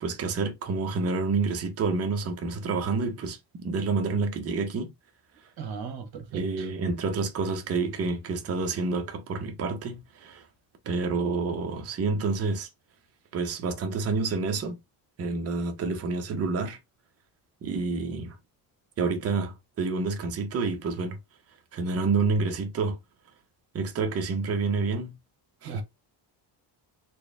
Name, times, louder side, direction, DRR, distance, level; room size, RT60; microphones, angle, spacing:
voice 1, 0.0-4.9 6.3-10.5 10.9-12.7 13.3-14.8 15.2-16.8 17.6-18.4 19.0-21.2 21.7-23.0 23.7-25.1 25.6-25.8, right 4 dB, 35° right, 0.7 m, -28 dB
voice 2, 5.6-6.7 25.6-25.8, right 6 dB, 60° right, 1.4 m, -38 dB
4.3 x 2.1 x 3.3 m
cardioid pair, 175°, 42 cm